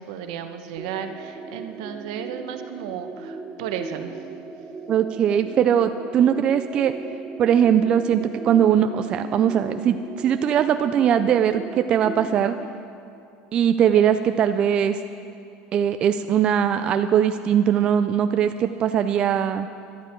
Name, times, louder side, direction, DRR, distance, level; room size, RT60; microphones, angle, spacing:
voice 1, 0.0-4.2, right 8 dB, 70° right, 7 dB, 1.0 m, -34 dB
sound 1, 0.8-12.7, right 4 dB, 10° right, 0.7 m, -38 dB
voice 2, 4.9-6.9 7.4-12.6 13.5-15.0 15.7-19.7, right 9 dB, 25° right, 8 dB, 0.3 m, -20 dB
19.0 x 12.0 x 4.5 m, 2.6 s
cardioid pair, 170°, 4 cm